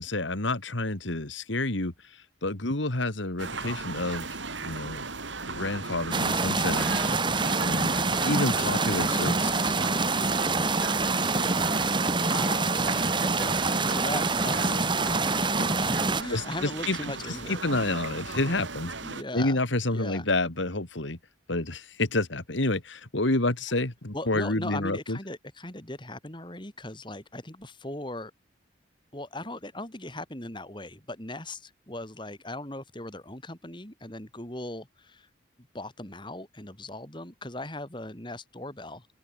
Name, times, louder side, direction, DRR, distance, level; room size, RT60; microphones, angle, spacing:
voice 1, 0.0-4.4 4.6-5.1 5.5-7.0 7.6-9.8 16.3-18.9 19.3-21.2 21.5-25.2, left 2 dB, 70° left, 2.5 m, -29 dB
sound 1, 3.4-19.2, right 4 dB, 70° right, 3.4 m, -37 dB
sound 2, 6.1-16.2, right 3 dB, 25° right, 2.6 m, -26 dB
voice 2, 12.3-13.6 13.9-14.8 15.2-17.6 19.0-19.6 19.9-20.3 24.1-28.3 29.1-35.3 35.7-39.1, left 1 dB, 25° left, 3.3 m, -39 dB
open air
head